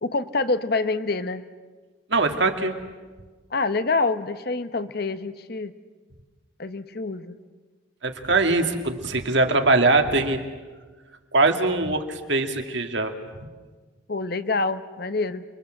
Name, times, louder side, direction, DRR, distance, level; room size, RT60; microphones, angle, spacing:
voice 1, 0.0-1.4 3.5-5.7 6.6-7.4 14.1-15.4, left 3 dB, 50° left, 11 dB, 0.9 m, -26 dB
voice 2, 2.1-2.8 8.0-10.4 11.3-13.1 13.4-13.5, right 3 dB, 65° right, 5 dB, 2.2 m, -22 dB
29.5 x 23.0 x 7.7 m, 1.4 s
head